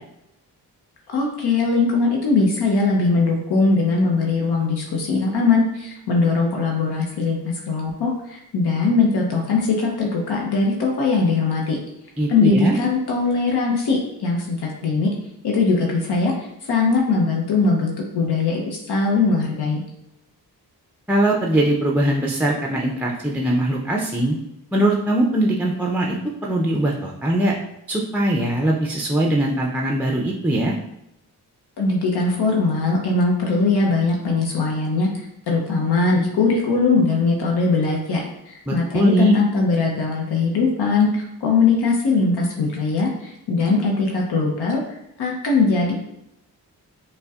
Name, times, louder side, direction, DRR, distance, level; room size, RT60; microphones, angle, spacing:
voice 1, 1.1-11.8 12.3-15.1 15.4-19.8 31.8-44.8 45.2-45.9, left 3 dB, 75° left, -1 dB, 0.7 m, -20 dB
voice 2, 12.2-12.8 21.1-24.4 24.7-26.2 26.4-27.5 27.9-30.8 38.7-39.4, right 1 dB, 5° right, -1 dB, 0.4 m, -21 dB
5.3 x 2.2 x 2.3 m, 0.83 s
cardioid pair, 55°, 40 cm